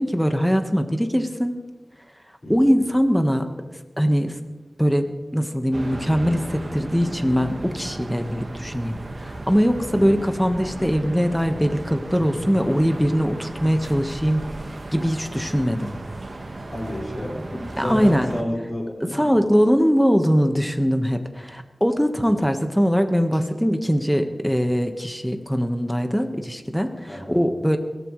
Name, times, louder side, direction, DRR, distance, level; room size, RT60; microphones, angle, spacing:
voice 1, 0.0-1.5 2.5-3.5 4.0-4.3 4.8-5.0 5.3-14.4 14.9-15.9 17.8-18.3 19.0-27.8, equal, ahead, 6 dB, 1.4 m, -21 dB
voice 2, 2.4-2.8 9.9-10.3 16.7-19.4 27.1-27.4, equal, 45° left, -2 dB, 5.5 m, -31 dB
sound 1, 5.7-18.4, right 2 dB, 55° right, 1.6 m, -35 dB
23.0 x 16.5 x 3.3 m, 1.2 s
wide cardioid pair, 70°, 0 cm